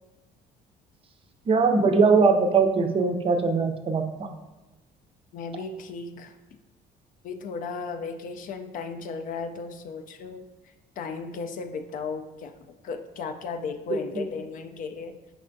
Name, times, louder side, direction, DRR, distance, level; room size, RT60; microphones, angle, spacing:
voice 1, 1.5-4.3, right 4 dB, 35° right, 6 dB, 0.5 m, -21 dB
voice 2, 5.3-6.4 7.2-15.2, left 4 dB, 55° left, 7 dB, 0.4 m, -35 dB
5.3 x 3.3 x 2.6 m, 1.1 s
cardioid pair, 110°, 17 cm